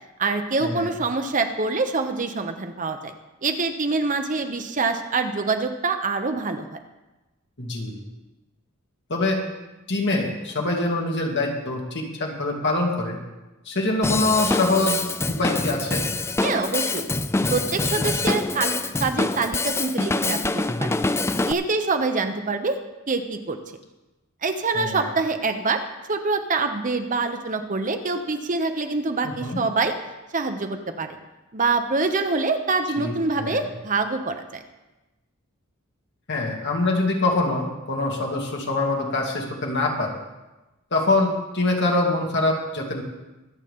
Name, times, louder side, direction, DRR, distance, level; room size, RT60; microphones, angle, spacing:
voice 1, 0.2-3.1 3.4-6.8 16.4-17.1 17.5-21.0 21.5-22.8 23.1-23.6 24.4-25.8 26.1-30.0 30.3-31.2 31.5-34.6, right 3 dB, 40° right, 6 dB, 1.0 m, -25 dB
voice 2, 7.6-8.0 9.1-9.4 9.9-13.2 13.7-16.0 24.7-25.1 29.4-29.6 33.0-33.6 36.3-40.1 40.9-43.0, left 2 dB, 55° left, 0 dB, 2.5 m, -24 dB
Drum kit / Drum, 14.0-21.5, left 3 dB, 10° left, 0.4 m, -25 dB
24.0 x 8.3 x 3.7 m, 1.1 s
head